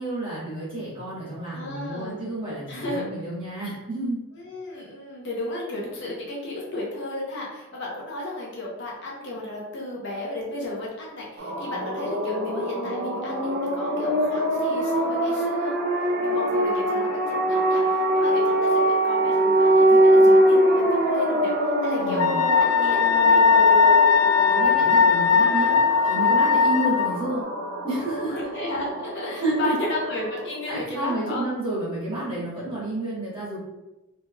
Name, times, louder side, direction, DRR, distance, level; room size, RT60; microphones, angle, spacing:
voice 1, 0.0-4.2 22.0-22.4 24.5-27.4 27.8-28.4 29.4-29.6 30.7-33.6, right 1 dB, 25° right, -8 dB, 1.4 m, -30 dB
voice 2, 1.5-2.2 2.7-3.0 4.3-15.8 16.2-21.5 21.8-22.2 22.5-24.0 26.5-26.6 28.3-31.4, left 2 dB, 50° left, -4 dB, 0.7 m, -34 dB
sound 1, 11.4-30.8, right 1 dB, 45° right, 0.5 m, -23 dB
Wind instrument woodwind instrument, 22.2-27.1, left 5 dB, 85° left, 0.3 m, -18 dB
3.1 x 3.1 x 2.2 m, 1.0 s
head